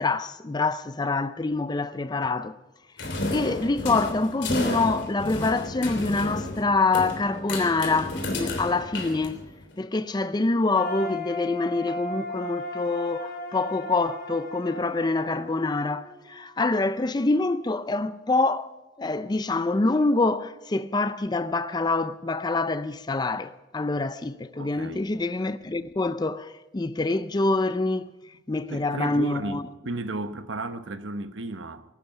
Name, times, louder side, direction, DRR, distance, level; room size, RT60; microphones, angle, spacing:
voice 1, 0.0-2.5 3.3-9.4 9.8-18.7 19.0-28.1 28.5-29.6, left 3 dB, 20° left, 0.4 m, -26 dB
sound 1, 3.0-9.7, left 2 dB, 65° left, 3.3 m, -32 dB
sound 2, 10.7-16.7, left 1 dB, 50° left, 5.1 m, -36 dB
voice 2, 24.5-25.1 28.7-31.8, right 2 dB, 75° right, 1.1 m, -34 dB
20.5 x 12.0 x 5.9 m
head